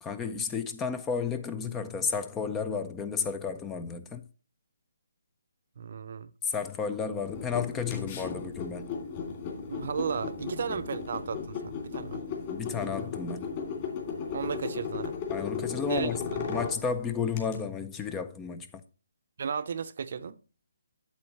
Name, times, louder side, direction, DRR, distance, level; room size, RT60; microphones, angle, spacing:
voice 1, 0.0-4.2 6.4-8.9 10.7-10.8 12.5-13.5 15.3-18.8, left 6 dB, 10° left, 0.4 m, -32 dB
voice 2, 5.8-6.3 9.7-12.2 14.3-15.2 15.9-16.4 19.4-20.4, right 6 dB, 50° right, 0.6 m, -34 dB
sound 1, 7.2-17.6, left 5 dB, 30° left, 2.6 m, -36 dB
8.3 x 7.8 x 3.0 m
hypercardioid pair, 160°, 0 cm